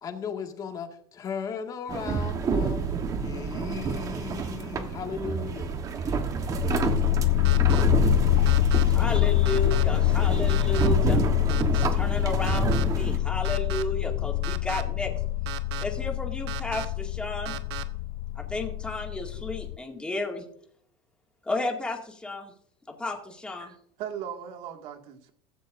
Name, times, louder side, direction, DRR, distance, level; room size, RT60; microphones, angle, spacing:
voice 1, 0.0-5.7, left 6 dB, 30° left, 1.9 m, -36 dB
sound 1, 1.9-13.2, right 5 dB, 25° right, 1.2 m, -29 dB
sound 2, 6.4-19.8, left 16 dB, 65° left, 0.4 m, -25 dB
sound 3, 7.4-7.8 8.5-8.8 9.5-9.8 10.5-10.9 11.5-11.9 12.5-12.8 13.4-13.8 14.4-14.8 15.5-15.8 16.5-16.9 17.5-17.8, right 15 dB, 85° right, 1.1 m, -36 dB
voice 2, 8.9-11.3 11.7-15.1 15.8-17.6 18.4-20.4 21.4-22.5 22.9-23.7, left 2 dB, 5° left, 2.1 m, -33 dB
voice 3, 23.6-25.3, right 9 dB, 50° right, 2.0 m, -38 dB
15.5 x 15.0 x 2.6 m
supercardioid pair, 150°, 13 cm